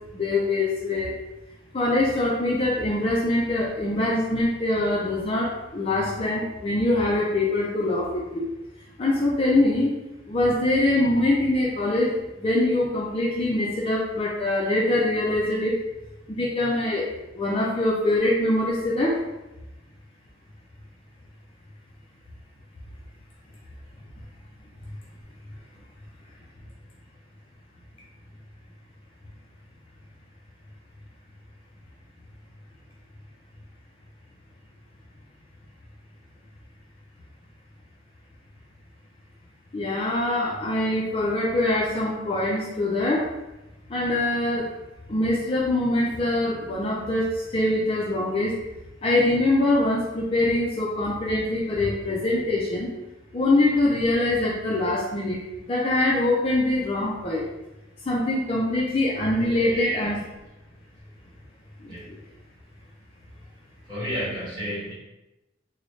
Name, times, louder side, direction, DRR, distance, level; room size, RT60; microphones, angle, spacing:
voice 1, 0.1-1.1 1.7-8.4 9.0-9.9 10.3-15.8 16.3-17.1 17.4-19.2 39.7-43.3 43.9-44.7 45.1-48.5 49.0-52.9 53.3-55.4 55.7-57.4 58.1-60.2 61.8-61.9, left 1 dB, 30° left, -3 dB, 0.4 m, -23 dB
voice 2, 59.3-60.3 61.9-62.0 63.9-64.9, equal, 20° right, -8 dB, 1.2 m, -32 dB
3.9 x 2.0 x 3.1 m, 0.97 s
head